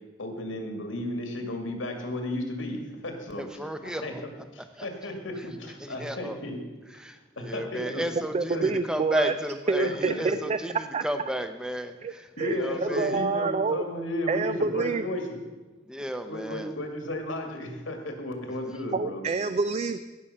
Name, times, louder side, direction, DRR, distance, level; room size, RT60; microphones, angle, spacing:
voice 1, 0.2-4.1 4.5-6.6 7.4-8.1 8.5-8.8 9.8-10.3 12.4-15.4 16.3-19.2, left 1 dB, 85° left, 3 dB, 2.0 m, -34 dB
voice 2, 3.4-4.2 4.8-4.9 5.8-6.4 7.0-12.3 12.6-13.2 15.9-16.7, equal, 5° right, 8 dB, 0.6 m, -33 dB
voice 3, 8.3-9.3 9.7-10.6 10.9-11.0 12.0-12.1 12.4-13.8 14.3-15.0 18.9-20.0, right 4 dB, 35° right, 11 dB, 0.3 m, -27 dB
16.0 x 6.3 x 5.6 m, 1.2 s
head